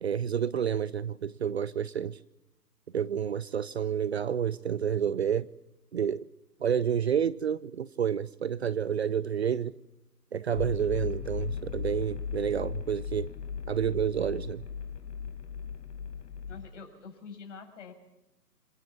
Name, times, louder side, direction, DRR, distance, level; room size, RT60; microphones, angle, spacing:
voice 1, 0.0-2.2 2.9-5.5 5.9-6.3 6.6-9.7 10.3-13.3 13.7-14.6, right 8 dB, 40° right, 18 dB, 0.7 m, -29 dB
sound 1, 10.5-16.7, left 6 dB, 75° left, 1.7 m, -37 dB
voice 2, 16.5-17.9, left 5 dB, 45° left, 4 dB, 6.5 m, -46 dB
27.0 x 17.5 x 7.3 m, 0.90 s
figure-of-eight pair, 140°, 48 cm